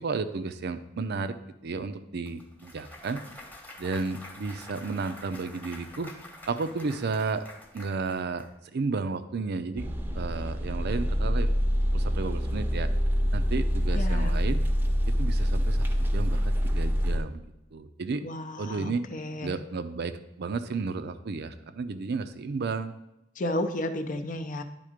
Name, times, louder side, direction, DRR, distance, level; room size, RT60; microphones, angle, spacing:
voice 1, 0.0-1.4 1.6-3.2 3.8-6.1 6.5-7.5 7.7-8.5 8.7-9.9 10.1-11.5 11.9-12.9 13.3-14.6 15.1-17.4 17.7-18.2 18.6-19.1 19.4-23.0, right 4 dB, 55° right, 10 dB, 0.5 m, -32 dB
Clapping / Cheering / Applause, 2.3-8.5, left 1 dB, 10° left, 1.1 m, -47 dB
sound 1, 9.8-17.2, equal, 10° right, 0.7 m, -26 dB
voice 2, 13.9-14.3 18.2-19.6 23.4-24.6, left 1 dB, 40° left, 8 dB, 0.6 m, -32 dB
10.0 x 3.7 x 5.0 m, 0.89 s
head